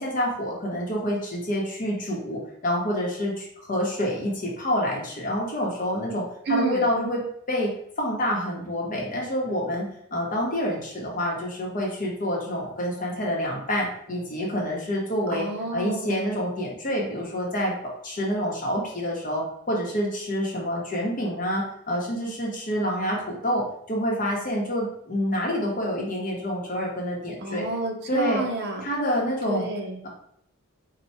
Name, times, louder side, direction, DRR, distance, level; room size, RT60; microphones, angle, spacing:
voice 1, 0.0-15.5 15.7-27.6 28.1-28.4 28.8-29.7, equal, 35° left, -2 dB, 1.0 m, -27 dB
voice 2, 6.5-6.9 15.3-16.3 27.4-28.8 29.5-30.0, right 3 dB, 50° right, 2 dB, 0.7 m, -29 dB
4.5 x 2.3 x 4.1 m, 0.71 s
head